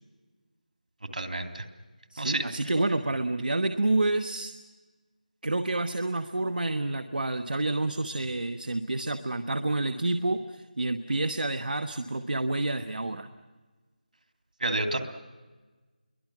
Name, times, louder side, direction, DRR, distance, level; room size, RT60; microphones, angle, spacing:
voice 1, 1.1-1.6 2.2-2.4 14.6-15.0, right 2 dB, 70° right, 6 dB, 2.8 m, -29 dB
voice 2, 2.1-4.5 5.4-13.3, right 2 dB, 85° right, 8 dB, 1.2 m, -29 dB
28.5 x 22.5 x 6.1 m, 1.3 s
figure-of-eight pair, 175°, 5 cm